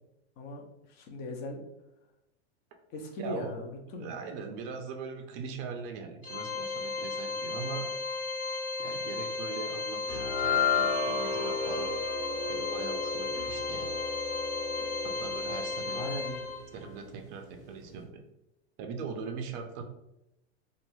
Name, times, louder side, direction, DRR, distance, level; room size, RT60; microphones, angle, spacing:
voice 1, 0.9-1.6 2.9-4.2 15.9-16.4, left 1 dB, 30° left, 2 dB, 0.4 m, -38 dB
voice 2, 3.2-3.5 4.0-7.9 8.8-11.9 12.5-13.9 15.0-16.1 16.7-18.2 18.8-19.8, right 5 dB, 35° right, 4 dB, 0.4 m, -41 dB
Organ, 6.2-16.9, left 3 dB, 80° left, 1.0 m, -35 dB
sound 1, 10.1-16.5, left 5 dB, 65° left, 1.2 m, -33 dB
2.5 x 2.3 x 3.0 m, 0.87 s
supercardioid pair, 145°, 35 cm